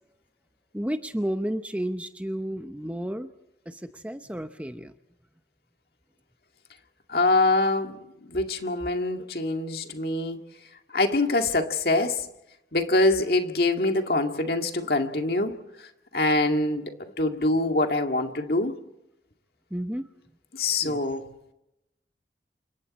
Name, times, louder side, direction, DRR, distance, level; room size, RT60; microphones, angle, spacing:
voice 1, 0.7-3.3 3.7-4.9 19.7-20.1 20.8-21.0, equal, 10° right, 8 dB, 0.8 m, -32 dB
voice 2, 7.1-8.0 8.3-10.4 10.9-12.3 12.7-15.6 16.1-18.7 20.5-21.2, left 2 dB, 60° left, 4 dB, 2.1 m, -24 dB
28.5 x 26.0 x 4.3 m, 0.86 s
head